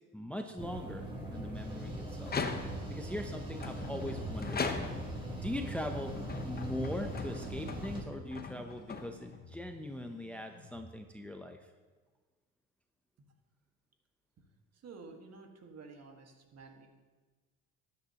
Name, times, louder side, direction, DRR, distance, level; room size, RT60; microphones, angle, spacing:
voice 1, 0.1-2.3 2.9-4.6 5.4-6.2 6.4-11.6, left 1 dB, 5° left, 5 dB, 0.7 m, -40 dB
sound 1, 0.6-8.0, right 1 dB, 15° right, 2.9 m, -40 dB
sound 2, 2.2-3.0 3.6-5.3 5.9-9.5, left 4 dB, 30° left, 1.0 m, -40 dB
sound 3, 2.4-10.9, left 2 dB, 50° left, 1.7 m, -56 dB
voice 2, 14.7-16.9, right 4 dB, 45° right, 3 dB, 1.7 m, -51 dB
12.5 x 9.5 x 2.9 m, 1.3 s
supercardioid pair, 85°, 34 cm